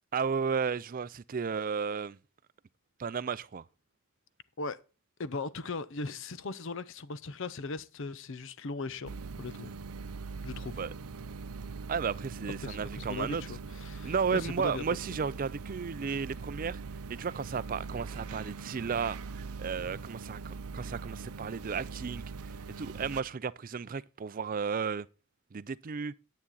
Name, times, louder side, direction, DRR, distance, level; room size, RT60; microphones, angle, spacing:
voice 1, 0.1-2.2 3.0-3.6 10.8-10.9 11.9-13.4 14.0-16.8 17.1-22.2 22.8-25.1 25.5-26.1, right 6 dB, 40° right, 0.4 m, -33 dB
voice 2, 5.2-9.1 9.4-9.8 10.4-10.8 12.6-14.8, left 3 dB, 60° left, 0.6 m, -38 dB
sound 1, 9.1-23.2, right 4 dB, 90° right, 0.6 m, -42 dB
10.0 x 8.4 x 3.9 m
head